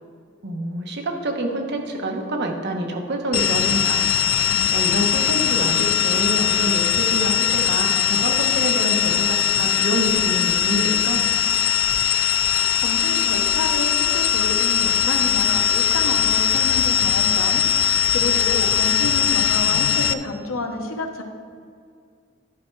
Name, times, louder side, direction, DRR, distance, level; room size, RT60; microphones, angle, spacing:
voice 1, 0.4-4.1 4.7-11.2, right 1 dB, 55° right, 2 dB, 1.1 m, -26 dB
sound 1, 3.3-20.1, left 8 dB, 75° left, 0.3 m, -20 dB
voice 2, 12.8-21.2, left 2 dB, 90° left, 4 dB, 1.0 m, -29 dB
11.0 x 5.7 x 4.6 m, 2.2 s
head